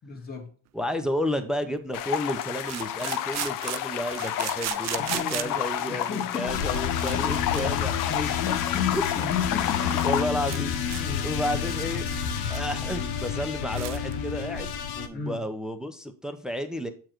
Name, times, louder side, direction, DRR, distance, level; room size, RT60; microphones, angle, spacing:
voice 1, 0.0-0.5 4.9-5.6 5.9-6.6 7.1-7.7 8.1-10.0 11.0-11.3 15.1-15.4, left 6 dB, 25° left, 1.7 m, -33 dB
voice 2, 0.7-8.0 8.5-8.6 8.9-9.2 9.8-14.7 15.0-16.9, equal, ahead, 0.6 m, -32 dB
sound 1, 0.8-0.9 2.6-5.7 6.4-6.5 6.7-7.6 7.9-8.1 8.6-8.7 9.0-9.2 9.4-9.5 9.8-10.1 10.5-10.6 10.9-11.0 11.4-12.7 13.0-13.1 13.4-13.5 13.7-14.1, right 14 dB, 45° right, 0.5 m, -36 dB
sound 2, 1.9-10.2, left 10 dB, 55° left, 0.7 m, -30 dB
sound 3, 6.5-15.1, left 8 dB, 85° left, 1.1 m, -30 dB
7.7 x 4.7 x 4.4 m
cardioid pair, 110°, 40 cm